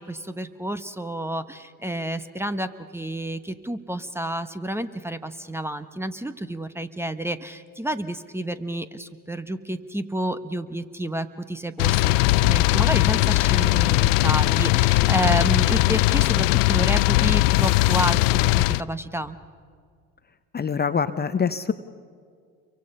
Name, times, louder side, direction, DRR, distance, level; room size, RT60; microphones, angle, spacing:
voice 1, 0.0-19.4, right 1 dB, 5° right, 12 dB, 1.2 m, -30 dB
sound 1, 11.8-18.8, left 20 dB, 70° left, 0.5 m, -19 dB
voice 2, 20.5-21.7, left 6 dB, 25° left, 11 dB, 0.9 m, -24 dB
29.0 x 24.0 x 5.6 m, 2.1 s
hypercardioid pair, 70°, 39 cm